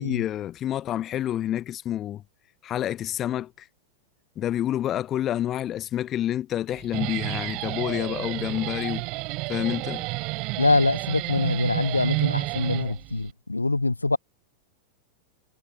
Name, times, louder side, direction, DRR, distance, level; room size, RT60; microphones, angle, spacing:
voice 1, 0.0-2.2 2.6-3.7 4.4-9.0 9.5-10.0, left 12 dB, 30° left, 0.8 m, -28 dB
Guitar, 6.7-13.3, right 26 dB, 40° right, 3.0 m, -30 dB
voice 2, 10.6-14.2, left 2 dB, 80° left, 1.1 m, -24 dB
figure-of-eight pair, 90°, 0 cm